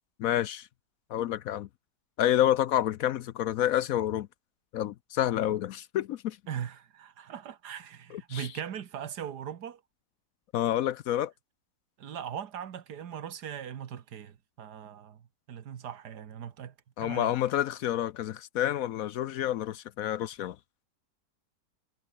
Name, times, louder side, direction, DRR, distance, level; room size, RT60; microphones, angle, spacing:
voice 1, 0.2-0.7 1.1-1.7 2.2-4.3 4.7-6.4 8.1-8.5 10.5-11.3 17.0-20.6, left 11 dB, 70° left, 0.9 m, -28 dB
voice 2, 6.5-9.8 12.0-15.2 15.5-16.7 17.0-17.3, right 9 dB, 75° right, 1.8 m, -39 dB
omnidirectional pair, 1.7 m